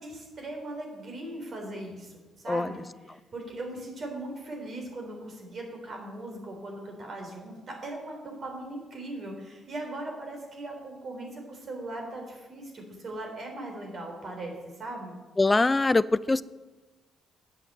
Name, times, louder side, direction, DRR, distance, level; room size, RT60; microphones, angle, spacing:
voice 1, 0.0-15.2, right 1 dB, 50° right, 1 dB, 3.7 m, -39 dB
voice 2, 15.4-16.4, left 2 dB, 20° left, 17 dB, 0.4 m, -23 dB
8.7 x 7.8 x 7.4 m, 1.2 s
cardioid pair, 90°, 0 cm